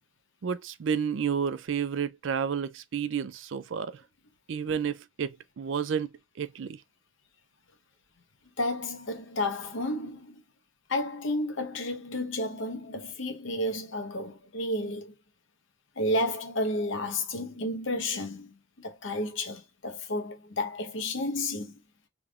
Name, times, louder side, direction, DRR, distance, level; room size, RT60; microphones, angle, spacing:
voice 1, 0.4-4.0 4.5-6.1 6.4-6.8, right 7 dB, 65° right, 0.4 m, -31 dB
voice 2, 8.6-10.4 10.9-15.1 16.0-21.7, left 1 dB, 65° left, 0.9 m, -31 dB
3.8 x 3.4 x 2.3 m
head